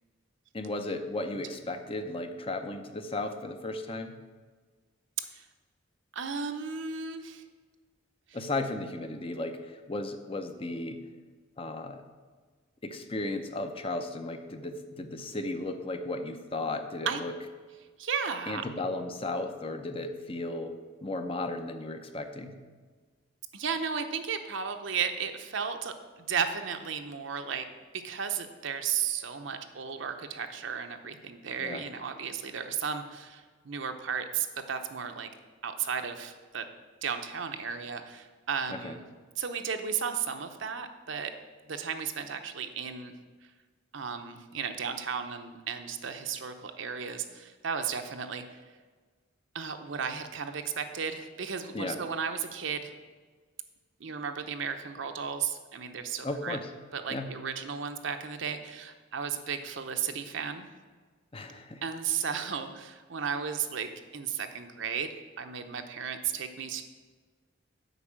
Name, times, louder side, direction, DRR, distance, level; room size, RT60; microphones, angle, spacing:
voice 1, 0.5-4.2 8.3-11.0 11.6-12.0 12.8-17.3 18.5-20.7 21.0-22.6 31.6-31.8 38.7-38.9 51.7-52.0 56.2-56.7 57.1-57.3 61.3-61.8, left 2 dB, 30° left, 7 dB, 0.7 m, -35 dB
voice 2, 6.1-7.4 17.0-17.2 18.0-18.6 23.5-27.6 27.9-35.3 35.6-36.7 37.0-39.0 39.4-41.3 41.6-43.1 43.9-48.6 49.5-53.0 54.0-56.6 56.9-60.7 61.8-66.8, right 6 dB, 65° right, 7 dB, 0.8 m, -34 dB
8.1 x 5.4 x 7.4 m, 1.4 s
head